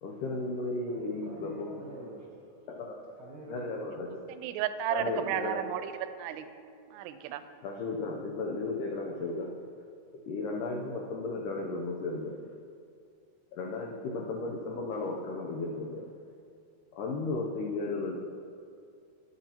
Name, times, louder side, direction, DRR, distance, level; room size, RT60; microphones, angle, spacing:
voice 1, 0.0-1.7 2.7-3.1 3.5-4.2 4.9-5.6 7.6-9.5 10.3-12.4 13.5-16.0 16.9-18.2, left 3 dB, 85° left, 0 dB, 1.8 m, -34 dB
voice 2, 0.9-2.7 3.2-4.0, right 2 dB, 70° right, -5 dB, 1.2 m, -46 dB
voice 3, 4.3-6.5 6.9-7.4, right 10 dB, 85° right, 10 dB, 2.6 m, -33 dB
19.0 x 6.9 x 2.9 m, 2.3 s
omnidirectional pair, 4.7 m